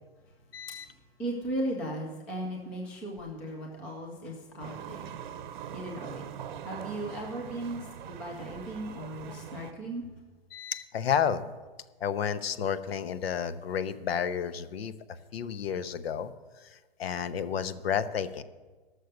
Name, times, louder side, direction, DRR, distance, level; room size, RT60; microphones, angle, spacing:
voice 1, 0.5-0.9 10.5-11.4 12.0-14.9 15.3-16.3 16.6-18.4, left 8 dB, 90° left, 13 dB, 0.9 m, -31 dB
voice 2, 1.2-5.1 5.7-6.3 6.6-10.0, right 1 dB, 5° left, 0 dB, 0.3 m, -36 dB
sound 1, 4.6-9.7, right 9 dB, 55° right, 0.8 m, -42 dB
13.5 x 6.6 x 6.5 m, 1.3 s
hypercardioid pair, 165°, 29 cm